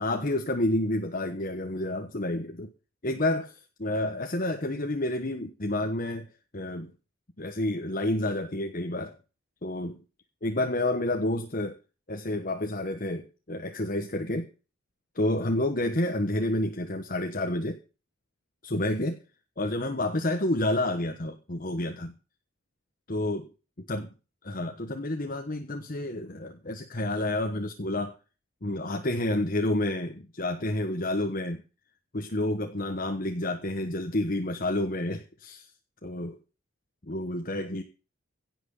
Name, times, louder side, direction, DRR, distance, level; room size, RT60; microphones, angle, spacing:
voice 1, 0.0-2.7 3.0-6.9 7.4-9.2 9.6-10.0 10.4-11.8 12.1-14.5 15.1-17.8 18.6-19.2 19.6-22.1 23.1-23.5 23.9-24.1 24.4-28.1 28.6-31.6 32.1-35.7 36.0-36.4 37.0-37.8, left 1 dB, 40° left, 5 dB, 1.2 m, -29 dB
16.5 x 6.2 x 7.1 m, 0.34 s
head